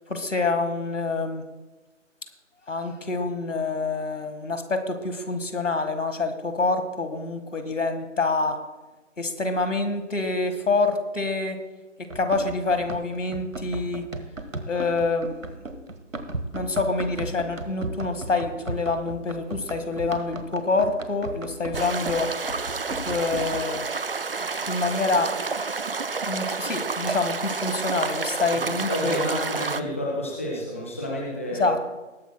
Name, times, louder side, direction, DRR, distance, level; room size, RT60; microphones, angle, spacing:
voice 1, 0.1-1.4 2.7-8.6 9.2-11.6 12.2-14.0 14.7-15.4 16.5-22.3 23.1-23.8 24.7-25.3 26.3-29.2 31.6-32.0, left 3 dB, 75° left, 8 dB, 1.7 m, -26 dB
Run, 12.1-23.8, right 2 dB, 85° right, 1.6 m, -36 dB
sound 1, 21.7-29.8, right 4 dB, 50° right, 0.5 m, -30 dB
voice 2, 28.5-31.7, equal, 10° left, -3 dB, 0.8 m, -30 dB
20.5 x 10.5 x 2.2 m, 1.2 s
figure-of-eight pair, 155°, 38 cm